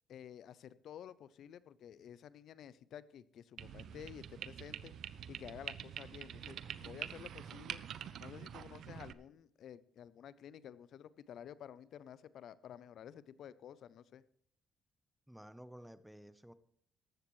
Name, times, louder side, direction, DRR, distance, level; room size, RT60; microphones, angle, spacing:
voice 1, 0.1-4.9 5.3-7.8 8.2-14.2, left 9 dB, 70° left, 18 dB, 0.6 m, -52 dB
sound 1, 3.6-9.1, right 9 dB, 70° right, 0.6 m, -46 dB
voice 2, 15.3-16.5, equal, 5° right, 13 dB, 0.9 m, -53 dB
14.5 x 11.5 x 3.2 m, 0.64 s
cardioid pair, 90°, 0 cm